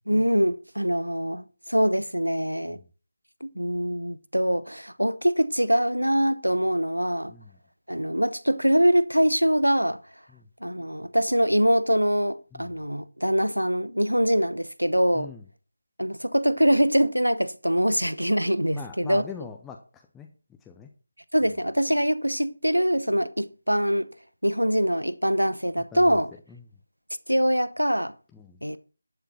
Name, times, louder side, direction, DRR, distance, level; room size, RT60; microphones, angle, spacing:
voice 1, 0.1-2.8 3.4-7.3 7.9-10.0 10.6-15.3 16.0-19.2 21.3-24.1 24.4-26.3 27.3-28.1 28.6-28.8, equal, 85° right, 1.0 m, -23 dB
voice 2, 15.1-15.4 18.7-20.3 20.6-20.9 25.9-26.2 26.5-26.6 28.3-28.6, left 6 dB, 5° left, 0.6 m, -42 dB
11.5 x 6.8 x 6.1 m
figure-of-eight pair, 160°, 0 cm